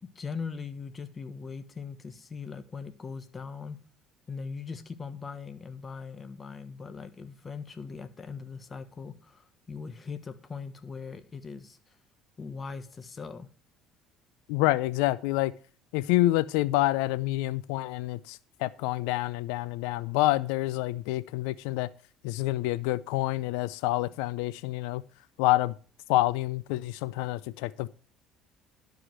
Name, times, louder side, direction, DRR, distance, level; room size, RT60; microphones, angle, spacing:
voice 1, 0.0-3.8 4.3-12.0 12.4-13.5, left 5 dB, 30° left, 1.2 m, -40 dB
voice 2, 14.5-15.5 15.9-21.9 22.2-25.0 25.4-25.7 26.1-27.9, left 17 dB, 85° left, 0.4 m, -27 dB
11.5 x 4.9 x 6.1 m
supercardioid pair, 85°, 0 cm